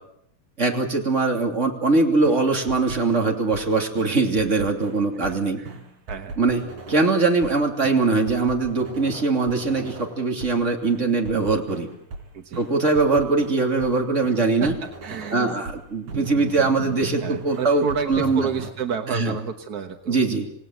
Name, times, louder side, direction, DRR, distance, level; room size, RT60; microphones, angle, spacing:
voice 1, 0.6-5.6 6.4-11.9 12.5-14.7 15.3-18.5 19.1-19.4 20.1-20.5, right 3 dB, 25° right, 3 dB, 3.0 m, -22 dB
sound 1, 2.3-3.7 4.0-5.4 5.7-7.6 7.8-10.6 10.8-12.3 12.5-14.0 14.2-15.8 16.1-18.7, right 3 dB, 80° right, 5.2 m, -37 dB
voice 2, 12.3-12.7 14.6-14.7 15.0-15.5 17.2-20.2, right 6 dB, 55° right, 6 dB, 1.0 m, -30 dB
27.5 x 18.5 x 7.9 m, 0.76 s
omnidirectional pair, 3.5 m